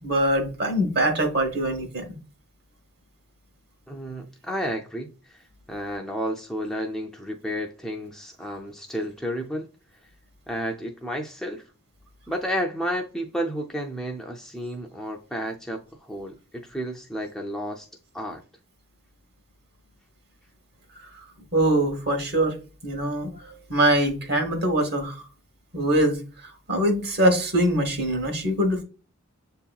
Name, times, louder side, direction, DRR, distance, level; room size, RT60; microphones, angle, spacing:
voice 1, 0.0-2.0 21.5-22.5 22.8-25.2 25.7-26.2 26.4-28.8, right 1 dB, 50° right, 1.1 m, -23 dB
voice 2, 3.9-9.7 10.5-11.6 12.3-17.9 18.1-18.4, equal, ahead, 0.4 m, -32 dB
7.6 x 2.8 x 2.3 m
head